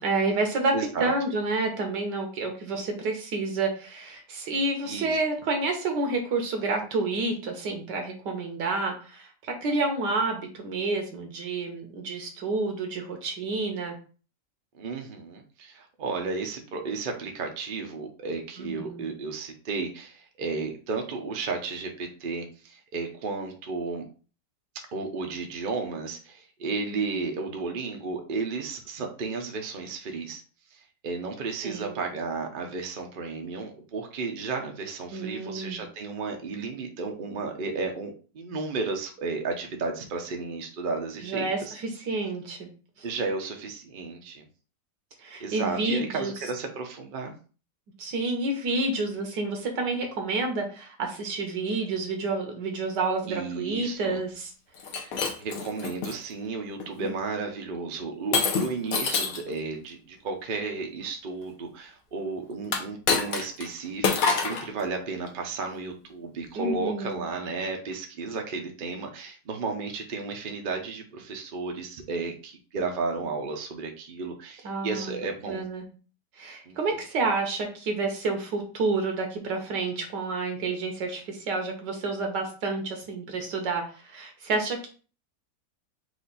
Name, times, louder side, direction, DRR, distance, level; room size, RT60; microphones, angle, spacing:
voice 1, 0.0-14.0 18.6-19.1 26.9-27.3 31.6-32.1 35.1-35.8 41.2-42.7 43.0-43.1 45.2-46.3 48.0-54.5 66.6-67.2 74.6-75.2 75.5-75.8 76.4-84.9, right 3 dB, 75° right, 3 dB, 1.7 m, -29 dB
voice 2, 0.7-1.1 4.8-5.2 14.7-24.0 24.7-30.4 30.7-41.7 43.0-44.5 45.4-47.3 53.3-54.2 54.9-75.6 76.7-76.8, right 4 dB, 45° right, 3 dB, 0.7 m, -33 dB
Shatter, 54.8-56.2 56.8-57.1 58.3-59.5 62.6-63.7 64.0-64.7, left 5 dB, 60° left, 1.1 m, -26 dB
4.9 x 2.6 x 4.0 m, 0.37 s
omnidirectional pair, 1.8 m